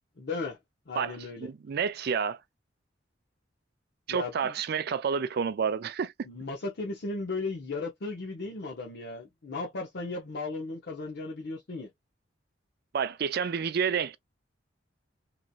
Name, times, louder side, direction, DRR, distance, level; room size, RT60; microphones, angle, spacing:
voice 1, 0.2-0.6 0.9-1.5 4.1-4.5 6.2-11.9, left 3 dB, 60° left, 0.7 m, -36 dB
voice 2, 1.4-2.4 4.1-6.1 12.9-14.2, right 6 dB, 55° right, 0.4 m, -29 dB
3.0 x 2.6 x 2.3 m
head